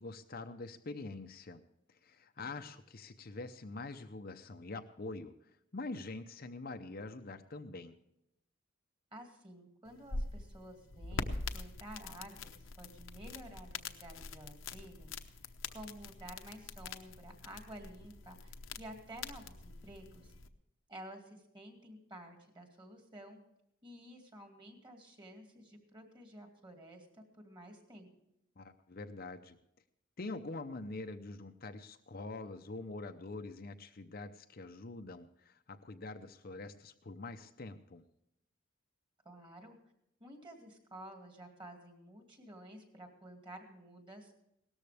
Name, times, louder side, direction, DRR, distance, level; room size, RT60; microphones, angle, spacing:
voice 1, 0.0-1.6 2.0-5.3 5.7-8.0 28.6-29.6 30.2-38.0, left 3 dB, 45° left, 7 dB, 0.7 m, -45 dB
voice 2, 2.4-2.7 9.1-11.3 11.5-15.1 15.4-20.3 20.9-23.4 23.8-28.1 39.2-39.8 40.2-44.3, right 1 dB, 25° right, 3 dB, 2.4 m, -52 dB
sound 1, 9.9-20.5, left 3 dB, 70° left, 0.9 m, -44 dB
18.0 x 13.5 x 3.4 m, 0.79 s
head